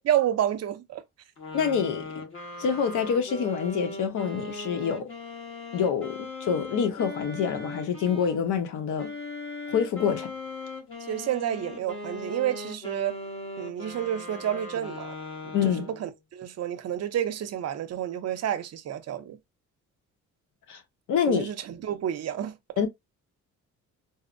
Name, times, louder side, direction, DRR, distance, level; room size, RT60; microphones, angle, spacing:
voice 1, 0.0-1.0 11.1-13.2 13.6-15.1 15.4-19.4 21.3-22.6, right 10 dB, 55° right, 0.6 m, -30 dB
sound 1, 1.4-8.4 9.0-16.1, left 3 dB, 45° left, 1.2 m, -39 dB
voice 2, 1.5-2.2 2.6-5.1 5.7-9.1 9.7-10.3 15.5-15.8 20.7-20.8 21.1-21.5 22.8-22.9, left 7 dB, 80° left, 0.9 m, -26 dB
4.1 x 2.1 x 2.5 m
cardioid pair, 90°, 30 cm